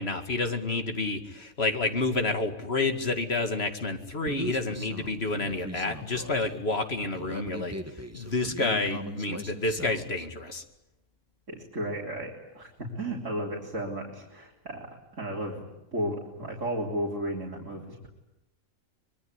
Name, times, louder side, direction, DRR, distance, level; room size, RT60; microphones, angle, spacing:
voice 1, 0.0-7.7 8.1-10.6, left 3 dB, 50° left, 7 dB, 2.5 m, -29 dB
Human voice, 4.3-10.3, right 1 dB, 10° right, 1.6 m, -40 dB
voice 2, 11.5-14.9 15.1-15.7 15.9-18.1, right 1 dB, 65° right, -3 dB, 4.0 m, -34 dB
25.5 x 22.0 x 9.7 m, 0.96 s
omnidirectional pair, 1.4 m